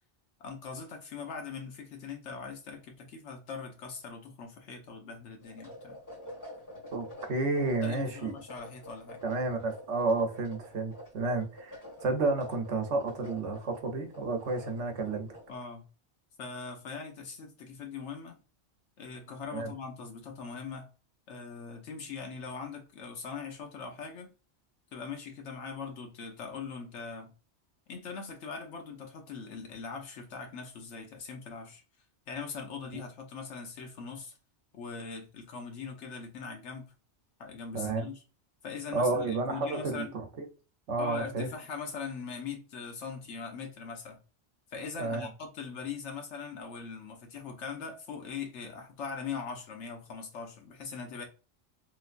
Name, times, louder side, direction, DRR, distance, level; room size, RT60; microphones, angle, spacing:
voice 1, 0.4-6.0 7.8-9.2 15.5-15.9 16.4-18.4 19.0-20.9 21.3-24.3 24.9-27.3 27.9-31.8 32.3-34.3 34.7-36.9 37.4-38.2 38.6-40.1 41.0-44.2 44.7-51.2, left 5 dB, 80° left, 1.1 m, -41 dB
sound 1, 5.4-15.5, equal, 15° left, 1.4 m, -48 dB
voice 2, 6.9-8.3 9.2-15.3 19.5-19.7 32.9-33.0 37.7-38.1 38.9-40.4 40.9-41.5 45.0-45.3, right 3 dB, 85° right, 1.0 m, -31 dB
3.2 x 3.0 x 2.4 m
omnidirectional pair, 1.2 m